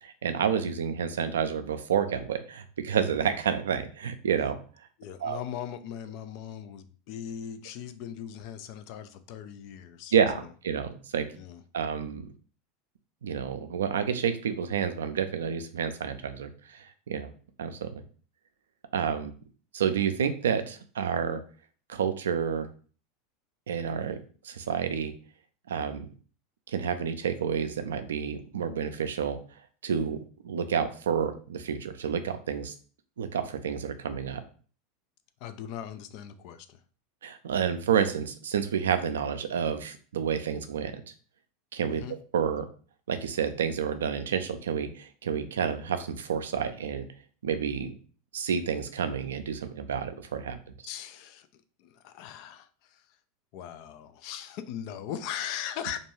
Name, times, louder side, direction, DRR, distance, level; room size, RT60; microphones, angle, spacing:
voice 1, 0.0-4.6 5.2-5.4 10.1-11.3 11.7-12.2 13.2-17.3 17.6-18.0 18.9-19.3 19.7-21.4 21.9-22.7 23.7-24.2 24.4-25.1 25.7-26.1 26.7-29.4 29.8-32.7 33.2-34.4 37.2-41.0 41.7-42.0 42.3-42.7 43.1-47.0 47.4-47.9 48.3-50.6, right 7 dB, 85° right, 10 dB, 0.3 m, -29 dB
voice 2, 5.0-10.1 11.4-11.6 35.4-36.8 41.9-42.2 50.8-53.1 53.5-56.0, left 9 dB, 60° left, 10 dB, 0.3 m, -39 dB
2.5 x 2.2 x 3.1 m, 0.40 s
hypercardioid pair, 95°, 0 cm